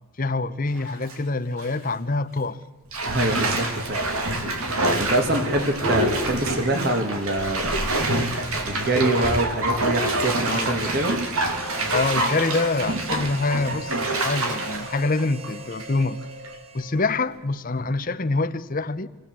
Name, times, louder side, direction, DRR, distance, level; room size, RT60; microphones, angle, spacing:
voice 1, 0.2-2.6 5.3-5.4 10.5-10.8 11.9-16.2 16.7-19.1, left 3 dB, 40° left, 0.8 m, -25 dB
Bathtub (filling or washing), 0.7-1.2 1.6-1.7 2.9-16.0 16.4-16.5, right 1 dB, 75° right, 2.7 m, -26 dB
voice 2, 3.1-4.0 5.0-7.9 8.6-11.2, right 1 dB, 45° right, 1.9 m, -25 dB
Harmonica, 11.5-17.3, right 1 dB, 25° right, 1.2 m, -39 dB
26.0 x 17.5 x 7.5 m
head